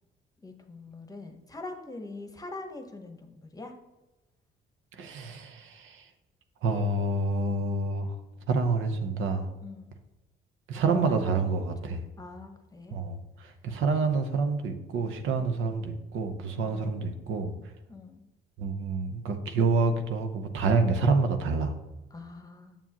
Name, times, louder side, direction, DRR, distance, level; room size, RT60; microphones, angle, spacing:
voice 1, 0.4-3.7 9.6-10.0 10.9-13.0 16.4-17.0 17.9-18.3 22.1-22.8, left 3 dB, 20° left, 5 dB, 0.9 m, -44 dB
voice 2, 5.0-6.0 6.6-8.2 8.5-9.5 10.7-12.0 12.9-17.5 18.6-21.7, right 3 dB, 85° right, 6 dB, 0.8 m, -28 dB
7.2 x 7.1 x 2.9 m, 1.1 s
cardioid pair, 90°, 20 cm